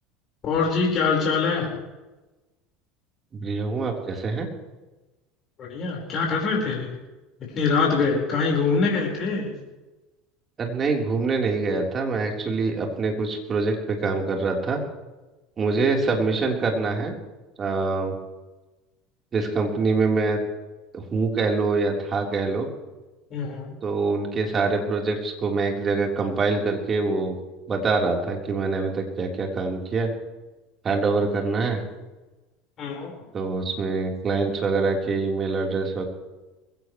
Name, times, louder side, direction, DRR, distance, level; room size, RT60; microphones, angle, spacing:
voice 1, 0.4-1.7 5.6-7.0 7.5-9.5 23.3-23.7 32.8-33.1, left 4 dB, 45° left, -2 dB, 4.7 m, -24 dB
voice 2, 3.3-4.5 10.6-14.8 15.6-17.1 17.6-18.2 19.3-20.4 20.9-22.7 23.8-27.4 27.7-30.1 30.8-31.8 33.3-36.0, right 4 dB, 35° right, 1 dB, 3.9 m, -25 dB
22.0 x 17.0 x 3.2 m, 1.1 s
hypercardioid pair, 75°, 0 cm